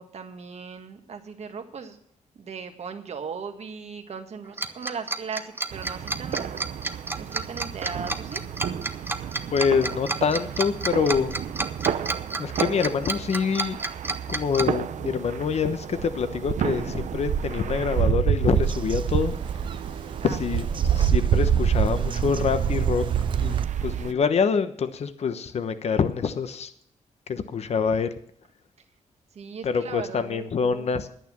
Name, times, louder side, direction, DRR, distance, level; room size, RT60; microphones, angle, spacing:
voice 1, 0.0-2.0 2.4-6.5 7.2-8.4 20.2-20.6 29.3-30.9, right 5 dB, 60° right, 6 dB, 1.7 m, -38 dB
Tick-tock, 4.6-14.6, right 2 dB, 15° right, 0.8 m, -30 dB
sound 1, 5.7-24.1, right 8 dB, 75° right, 0.7 m, -28 dB
voice 2, 9.5-11.4 12.4-13.8 14.3-19.4 20.2-23.0 23.4-26.7 27.3-28.2 29.6-31.1, left 6 dB, 60° left, 11 dB, 1.1 m, -26 dB
Bird vocalization bird call bird song, 18.6-23.7, right 6 dB, 40° right, 0.5 m, -35 dB
10.5 x 9.1 x 7.4 m, 0.65 s
cardioid pair, 100°, 12 cm